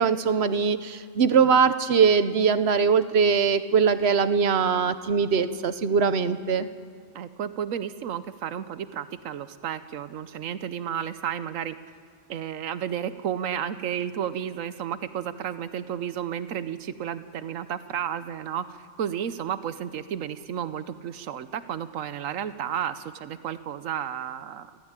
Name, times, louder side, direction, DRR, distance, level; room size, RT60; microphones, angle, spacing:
voice 1, 0.0-6.7, right 6 dB, 60° right, 12 dB, 1.1 m, -21 dB
voice 2, 7.1-11.8 12.3-24.8, right 9 dB, 90° right, 13 dB, 1.2 m, -32 dB
21.5 x 16.0 x 8.9 m, 2.1 s
omnidirectional pair, 1.3 m